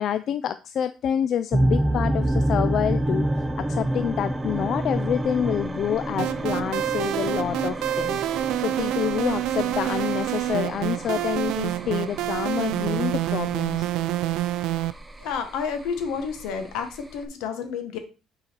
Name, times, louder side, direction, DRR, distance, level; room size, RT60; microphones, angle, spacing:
voice 1, 0.0-3.3 3.6-13.9, left 9 dB, 60° left, 11 dB, 0.3 m, -28 dB
sound 1, 1.5-17.3, right 1 dB, 15° right, 0.7 m, -29 dB
sound 2, 6.2-14.9, right 13 dB, 80° right, 0.3 m, -27 dB
voice 2, 15.2-18.0, left 6 dB, 85° left, 7 dB, 1.2 m, -30 dB
5.7 x 4.0 x 4.4 m, 0.32 s
cardioid pair, 100°, 0 cm